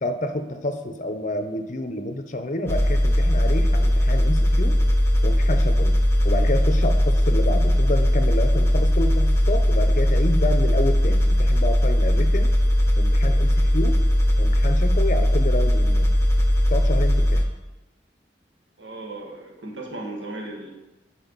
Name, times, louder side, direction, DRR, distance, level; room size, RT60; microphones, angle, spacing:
voice 1, 0.0-4.8 5.2-6.0 6.2-12.5 13.0-14.0 14.4-16.1 16.7-17.4, left 1 dB, 40° left, 7 dB, 0.7 m, -28 dB
sound 1, 2.7-17.4, equal, 15° left, 0.8 m, -19 dB
voice 2, 18.8-20.7, right 2 dB, 90° right, -1 dB, 1.6 m, -36 dB
11.5 x 4.5 x 4.0 m, 1.0 s
head